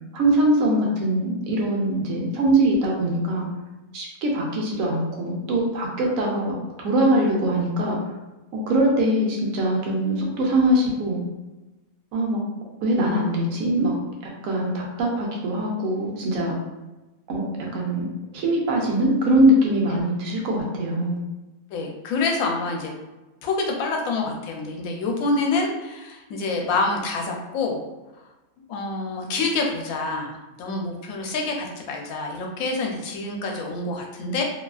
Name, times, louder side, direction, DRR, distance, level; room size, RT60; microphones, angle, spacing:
voice 1, 0.1-3.5 3.9-8.0 8.5-11.2 12.1-12.4 12.8-14.0 14.2-16.5 17.3-18.1 18.3-21.2, right 1 dB, 75° right, -1 dB, 1.0 m, -22 dB
voice 2, 21.7-22.9 23.4-27.8 28.7-34.4, left 3 dB, 80° left, 2 dB, 1.0 m, -27 dB
2.7 x 2.3 x 2.3 m, 1.1 s
omnidirectional pair, 1.5 m